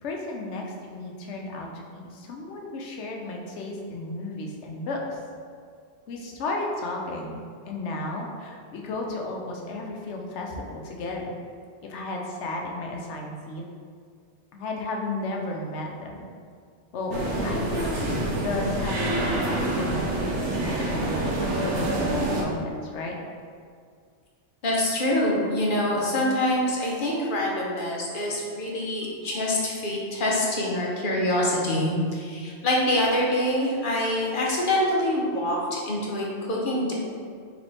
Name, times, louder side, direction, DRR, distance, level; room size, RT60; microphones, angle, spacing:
voice 1, 0.0-5.2 6.1-7.4 7.7-11.3 11.8-13.6 14.5-16.3 16.9-23.2, left 2 dB, 90° left, 0 dB, 1.0 m, -33 dB
sound 1, 17.1-22.4, right 1 dB, 85° right, 1.0 m, -27 dB
voice 2, 24.6-36.9, left 1 dB, 50° left, -3 dB, 0.9 m, -25 dB
3.4 x 3.3 x 3.9 m, 2.1 s
omnidirectional pair, 1.2 m